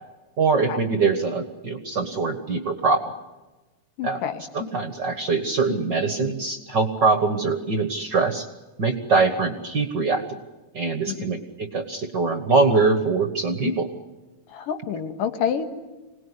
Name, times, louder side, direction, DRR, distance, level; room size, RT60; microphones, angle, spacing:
voice 1, 0.4-3.0 4.0-4.2 4.5-8.5 8.8-10.2 10.7-13.9, right 4 dB, 45° right, 8 dB, 1.5 m, -23 dB
voice 2, 4.0-4.4 11.1-11.4 14.5-15.7, left 8 dB, 85° left, 7 dB, 3.4 m, -28 dB
26.5 x 19.5 x 9.9 m, 1.2 s
omnidirectional pair, 3.7 m